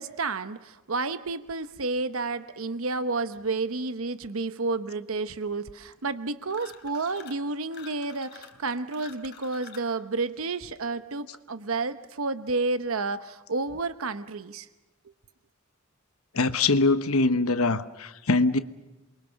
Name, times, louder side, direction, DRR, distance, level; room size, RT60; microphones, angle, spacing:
voice 1, 0.0-14.7, right 3 dB, 70° right, 1.0 m, -31 dB
sound 1, 6.5-7.4 7.7-9.9, left 7 dB, 50° left, 3.3 m, -48 dB
voice 2, 16.3-18.6, left 3 dB, 80° left, 1.1 m, -23 dB
28.5 x 23.5 x 6.5 m
head